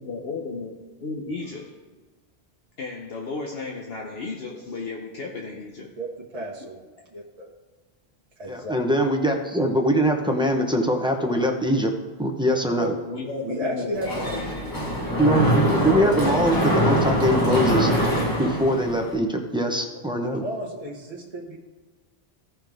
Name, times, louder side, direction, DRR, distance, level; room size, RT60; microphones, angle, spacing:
voice 1, 0.0-1.8 2.8-5.9 13.0-15.0, left 3 dB, 70° left, 0 dB, 1.1 m, -34 dB
voice 2, 6.3-6.8 7.1-7.5 8.4-8.7 12.8-12.9 13.4-14.3 15.0-15.1 20.2-21.6, right 1 dB, 35° right, -3 dB, 1.2 m, -33 dB
voice 3, 8.5-11.9 12.2-12.9 15.2-17.9 18.4-20.4, equal, 5° right, 1 dB, 0.9 m, -23 dB
Mechanisms, 14.0-19.1, equal, 20° left, 1.2 m, -23 dB
16.0 x 5.6 x 3.6 m, 1.3 s
omnidirectional pair, 1.1 m